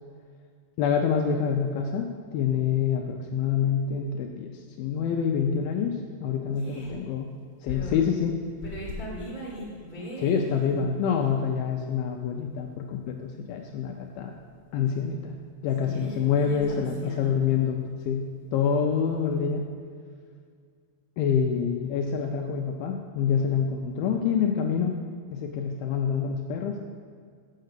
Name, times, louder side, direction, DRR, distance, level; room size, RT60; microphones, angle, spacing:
voice 1, 0.8-2.1 2.3-4.5 4.8-7.3 7.6-8.4 10.2-14.3 14.7-15.3 15.6-18.2 18.5-19.6 21.2-24.9 25.3-26.8, left 7 dB, 80° left, 3 dB, 2.3 m, -26 dB
voice 2, 6.5-6.9 7.7-8.0 8.6-10.8 15.8-17.3 18.9-19.3, equal, 20° right, -7 dB, 1.4 m, -38 dB
7.7 x 6.5 x 6.6 m, 2.1 s
omnidirectional pair, 4.7 m